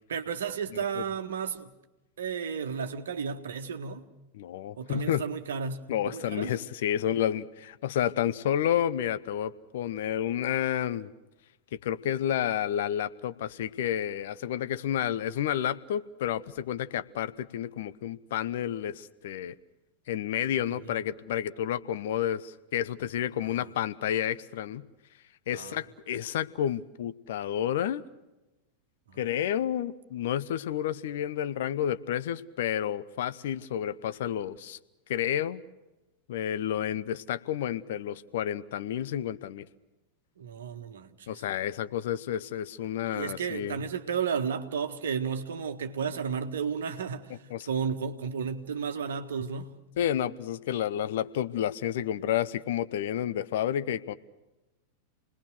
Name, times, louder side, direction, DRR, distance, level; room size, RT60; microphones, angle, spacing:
voice 1, 0.1-1.7 2.2-4.1 4.8-6.5 20.7-20.8 23.5-23.6 25.5-25.8 29.1-29.2 40.4-41.3 43.1-47.4 47.7-49.8, right 6 dB, 65° right, 1.6 m, -33 dB
voice 2, 0.7-1.0 4.3-5.2 5.9-11.1 11.7-19.5 20.1-24.8 25.5-28.0 29.2-34.8 35.1-35.6 36.3-39.7 41.3-43.9 47.5-47.7 50.0-54.1, left 10 dB, 55° left, 0.9 m, -30 dB
28.5 x 20.0 x 6.4 m
figure-of-eight pair, 90°, 0 cm